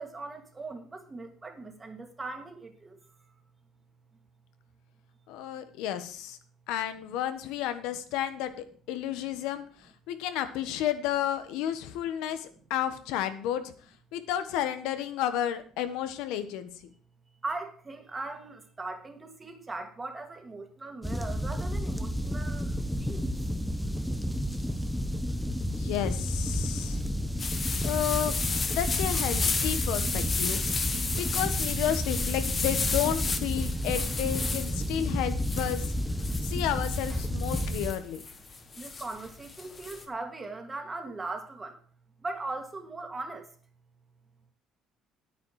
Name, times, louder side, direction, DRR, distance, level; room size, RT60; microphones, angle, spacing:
voice 1, 0.0-3.0 17.4-23.3 38.8-41.8 42.2-43.5, right 3 dB, 15° right, 4 dB, 1.8 m, -39 dB
voice 2, 5.3-6.4 6.7-8.5 8.9-13.7 14.1-16.7 25.6-27.0 27.8-28.4 28.7-30.6 31.2-35.9 36.4-38.2, left 11 dB, 85° left, 10 dB, 1.3 m, -32 dB
sound 1, 21.0-37.9, equal, ahead, 0.8 m, -31 dB
sound 2, 27.4-40.0, left 4 dB, 25° left, 1.2 m, -33 dB
10.5 x 9.2 x 4.8 m, 0.44 s
cardioid pair, 150°, 0 cm